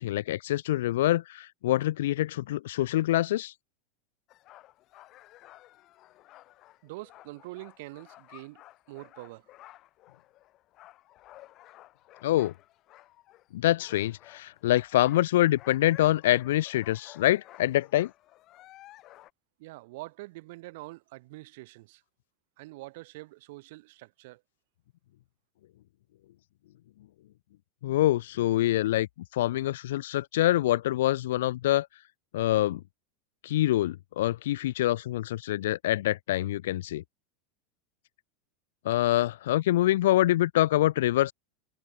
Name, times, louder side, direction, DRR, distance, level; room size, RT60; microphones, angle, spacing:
voice 1, 0.0-3.5 12.2-12.5 13.5-18.1 27.8-29.1 29.3-31.9 32.3-32.8 33.4-37.0 38.8-41.3, left 14 dB, 80° left, 0.5 m, -25 dB
sound 1, 4.3-13.5 13.8-19.3, left 15 dB, 35° left, 6.3 m, -54 dB
voice 2, 6.8-9.5 19.6-22.0 22.6-24.4, right 21 dB, 60° right, 6.3 m, -45 dB
supercardioid pair, 160°, 0 cm